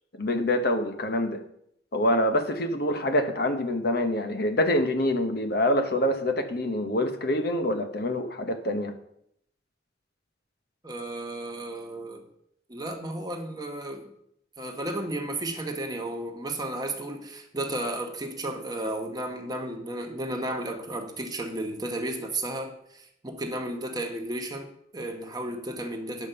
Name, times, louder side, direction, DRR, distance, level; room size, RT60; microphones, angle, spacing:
voice 1, 0.1-1.4 1.9-8.9, left 1 dB, 60° left, 1.0 m, -26 dB
voice 2, 10.8-12.3 12.7-14.1 14.6-26.3, right 1 dB, 20° right, 1.2 m, -33 dB
10.5 x 5.2 x 6.8 m
head